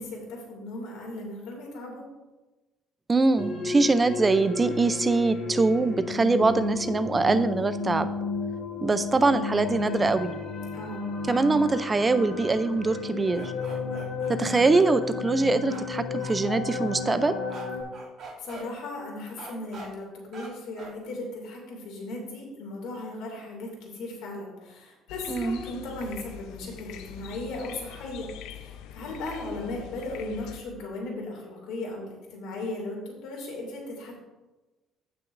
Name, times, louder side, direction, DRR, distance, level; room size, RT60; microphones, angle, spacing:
voice 1, 0.0-2.0 10.7-11.0 18.4-28.3 28.5-34.2, left 2 dB, 70° left, -1 dB, 2.3 m, -37 dB
voice 2, 3.1-8.1 8.8-10.3 11.3-13.5 14.3-17.4 25.3-25.6, right 3 dB, 15° right, 12 dB, 0.4 m, -23 dB
sound 1, 3.4-17.8, left 4 dB, 40° left, 1.9 m, -33 dB
sound 2, 13.3-14.9 15.7-15.9 16.2-16.3 17.5-17.6 17.9-18.6 19.4-19.9 20.3-20.5 20.8-20.9, right 3 dB, 40° right, 2.5 m, -43 dB
sound 3, 25.1-30.6, left 10 dB, 90° left, 0.6 m, -43 dB
15.5 x 6.0 x 2.5 m, 1.1 s
cardioid pair, 175°, 0 cm